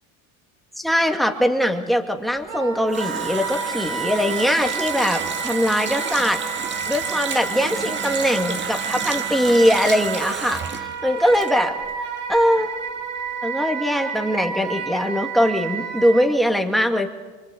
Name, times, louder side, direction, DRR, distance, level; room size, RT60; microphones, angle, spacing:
voice 1, 0.8-6.4 6.9-11.8 12.3-12.7 13.4-17.1, equal, ahead, 6 dB, 2.2 m, -21 dB
Water tap faucet, 2.4-12.0 12.3-12.4, right 5 dB, 25° right, 1.9 m, -31 dB
Wind instrument woodwind instrument, 2.5-16.3, right 6 dB, 50° right, 6.3 m, -31 dB
25.0 x 25.0 x 8.5 m, 1.3 s
cardioid pair, 130°, 40 cm